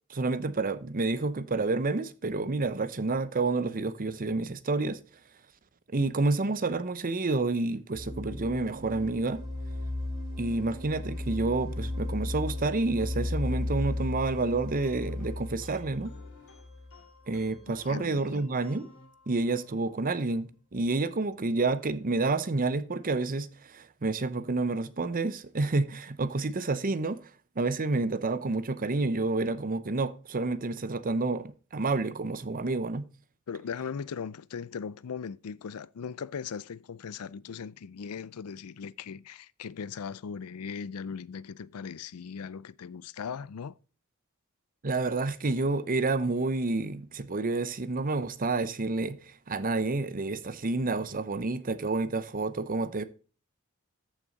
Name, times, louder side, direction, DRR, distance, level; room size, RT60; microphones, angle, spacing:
voice 1, 0.1-5.0 5.9-9.5 10.4-16.2 17.3-18.9 19.3-27.3 27.6-33.1 44.8-53.0, right 3 dB, 40° right, 0.7 m, -29 dB
sound 1, 7.9-17.7, left 2 dB, 15° right, 3.2 m, -35 dB
sound 2, 14.8-19.8, left 3 dB, 65° left, 3.4 m, -56 dB
voice 2, 17.9-18.4 33.5-43.8, left 6 dB, 90° left, 0.5 m, -39 dB
14.0 x 6.2 x 4.0 m
head